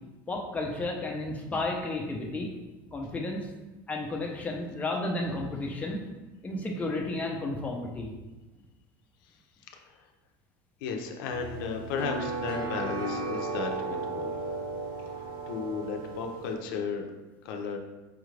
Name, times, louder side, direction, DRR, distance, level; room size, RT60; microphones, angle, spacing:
voice 1, 0.3-2.5 2.9-3.5 3.9-6.0 6.4-8.1, left 2 dB, 10° left, -1 dB, 0.5 m, -32 dB
voice 2, 10.8-14.3 15.2-17.1 17.4-17.8, left 5 dB, 80° left, 3 dB, 0.5 m, -34 dB
sound 1, 11.3-16.6, right 3 dB, 70° right, 1.2 m, -35 dB
4.9 x 2.4 x 3.2 m, 1.1 s
supercardioid pair, 135°, 11 cm